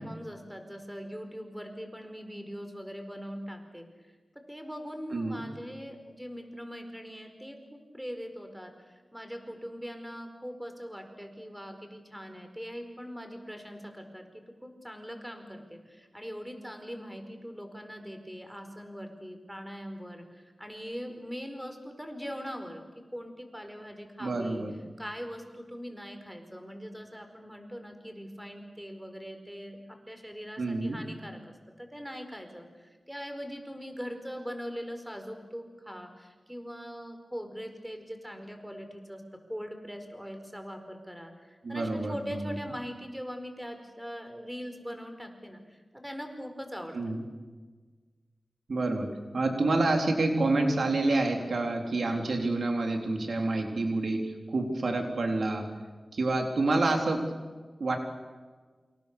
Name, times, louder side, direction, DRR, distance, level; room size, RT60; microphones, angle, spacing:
voice 1, 0.0-3.9 4.3-24.6 25.0-39.2 39.5-47.0, equal, 5° right, 6 dB, 4.7 m, -41 dB
voice 2, 5.1-5.5 24.2-24.7 30.6-31.0 41.6-42.6 46.9-47.2 48.7-49.1 49.3-55.7 56.1-57.3 57.8-58.0, right 2 dB, 75° right, 3 dB, 3.8 m, -28 dB
28.5 x 26.5 x 6.9 m, 1.4 s
wide cardioid pair, 70°, 0 cm